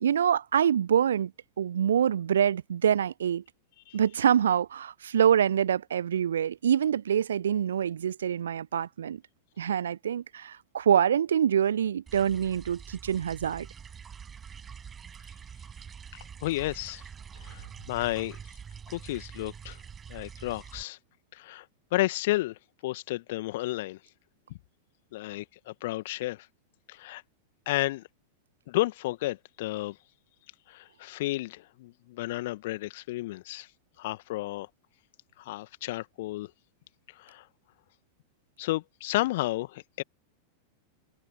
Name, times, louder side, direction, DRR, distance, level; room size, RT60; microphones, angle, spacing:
voice 1, 0.0-1.3 1.6-3.4 3.9-9.2 9.6-13.7, right 9 dB, 65° right, 0.8 m, -25 dB
sound 1, 12.1-20.8, right 7 dB, 20° right, 5.3 m, -45 dB
voice 2, 16.4-17.0 17.4-18.4 18.9-19.8 20.1-21.0 21.3-21.7 21.9-24.0 25.1-26.5 26.9-27.2 27.7-28.0 28.7-30.0 30.7-33.7 34.0-34.7 35.4-36.5 37.2-37.4 38.6-40.0, left 18 dB, 55° left, 1.8 m, -32 dB
figure-of-eight pair, 90°, 0 cm